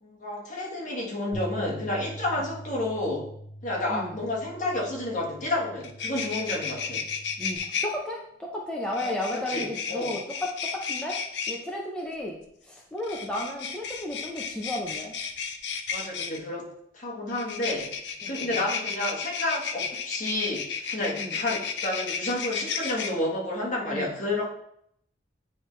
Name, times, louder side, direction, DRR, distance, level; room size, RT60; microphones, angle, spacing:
voice 1, 0.0-3.3 3.6-7.0 9.0-10.2 15.9-18.0 18.3-24.5, left 1 dB, 45° left, -2 dB, 1.5 m, -30 dB
Bass guitar, 1.3-7.6, equal, 80° right, 1.4 m, -43 dB
voice 2, 3.9-4.2 7.4-11.2 11.5-15.1 18.2-18.5 21.2-21.3 23.9-24.1, left 1 dB, 5° left, -3 dB, 0.7 m, -34 dB
sound 1, 5.8-7.9 8.9-11.6 13.0-16.4 17.3-23.1, left 6 dB, 85° left, 0.6 m, -33 dB
9.2 x 3.4 x 3.2 m, 0.71 s
head